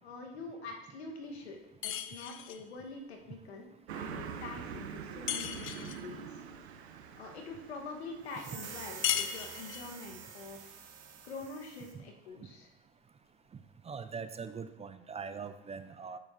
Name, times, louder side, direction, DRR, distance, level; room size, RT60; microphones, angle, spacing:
voice 1, 0.0-1.6 1.8-6.4 7.1-10.6 11.2-12.7, left 3 dB, 90° left, 3 dB, 1.2 m, -45 dB
sound 1, 1.8-2.7 5.3-6.1 9.0-10.0, left 10 dB, 40° left, 0.5 m, -35 dB
Car passing by, 3.9-8.8, right 7 dB, 90° right, 0.7 m, -44 dB
sound 2, 8.3-12.0, right 7 dB, 50° right, 1.3 m, -47 dB
voice 2, 13.9-16.2, right 5 dB, 20° right, 10 dB, 0.4 m, -42 dB
8.2 x 6.7 x 2.6 m, 0.89 s
hypercardioid pair, 80°, 31 cm